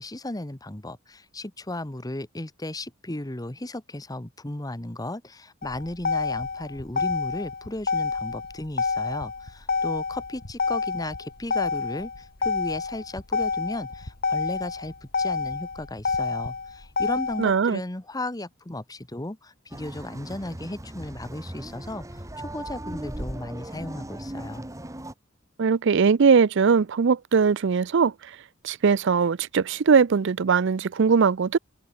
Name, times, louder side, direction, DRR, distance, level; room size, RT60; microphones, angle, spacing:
voice 1, 0.0-24.7, left 1 dB, 20° left, 1.3 m, -35 dB
Motor vehicle (road), 5.6-17.6, left 5 dB, 45° left, 1.6 m, -28 dB
voice 2, 17.4-17.8 25.6-28.1 28.6-31.6, right 5 dB, 60° right, 0.5 m, -20 dB
sound 1, 19.7-25.1, right 1 dB, 15° right, 1.7 m, -38 dB
head